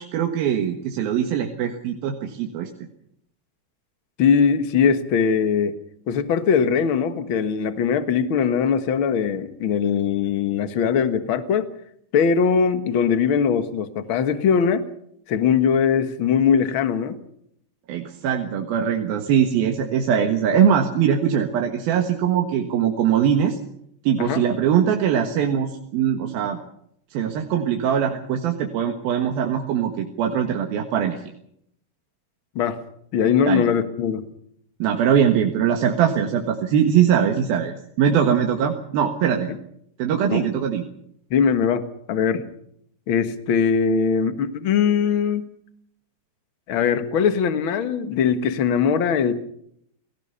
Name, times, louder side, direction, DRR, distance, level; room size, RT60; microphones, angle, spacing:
voice 1, 0.0-2.7 17.9-23.6 24.0-26.6 27.1-31.2 33.5-33.6 34.8-39.5 40.0-40.8, right 8 dB, 75° right, 3 dB, 3.3 m, -21 dB
voice 2, 4.2-5.7 6.1-11.7 12.1-14.8 15.3-17.2 24.2-24.4 32.5-32.8 33.1-34.3 39.5-39.6 40.3-40.5 41.3-42.4 43.1-45.5 46.7-49.3, left 6 dB, 60° left, 9 dB, 1.4 m, -21 dB
29.0 x 18.0 x 5.7 m, 0.71 s
omnidirectional pair, 4.4 m